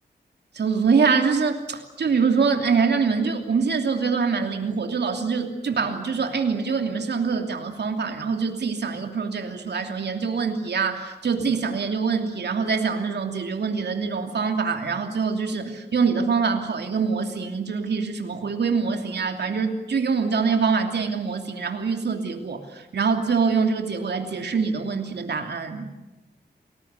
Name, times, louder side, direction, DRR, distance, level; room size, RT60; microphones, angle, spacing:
voice 1, 0.5-25.9, right 5 dB, 85° right, 5 dB, 2.9 m, -24 dB
29.5 x 20.5 x 8.3 m, 1.0 s
wide cardioid pair, 155°, 17 cm